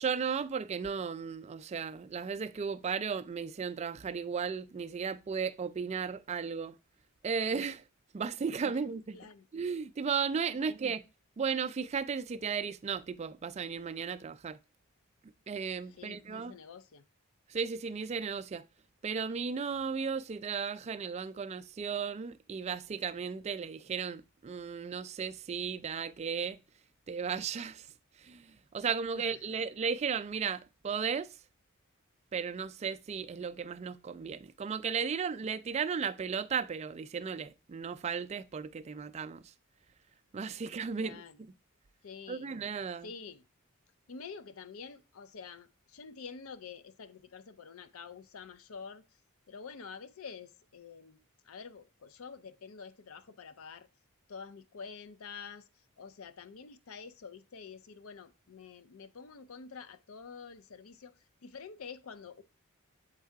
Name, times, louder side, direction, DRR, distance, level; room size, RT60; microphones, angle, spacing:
voice 1, 0.0-6.8 7.2-7.8 8.1-9.2 9.5-11.0 11.4-14.6 15.5-16.6 17.5-18.6 19.0-26.6 27.1-27.9 28.2-31.3 32.3-39.4 40.3-41.5 42.3-43.1, right 6 dB, 30° right, 0.3 m, -35 dB
voice 2, 9.1-9.5 10.5-10.7 15.9-17.0 29.1-29.6 41.0-41.4 42.0-42.5 43.0-43.4 44.1-49.0 49.5-51.2 51.4-53.9 54.3-55.7 56.0-61.1 61.4-62.4, left 5 dB, 80° left, 0.5 m, -48 dB
7.4 x 4.6 x 4.5 m
head